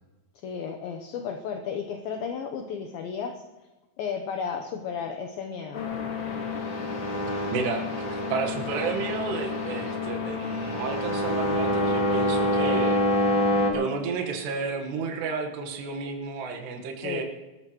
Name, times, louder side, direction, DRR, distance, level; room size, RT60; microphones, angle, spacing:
voice 1, 0.4-3.3 4.0-5.9 17.0-17.2, left 6 dB, 75° left, 4 dB, 2.4 m, -33 dB
sound 1, 5.7-13.7, left 1 dB, 45° left, 1.6 m, -27 dB
voice 2, 7.5-13.0 13.7-17.2, right 5 dB, 75° right, 3 dB, 3.5 m, -31 dB
23.5 x 14.0 x 3.1 m, 1.1 s
omnidirectional pair, 5.0 m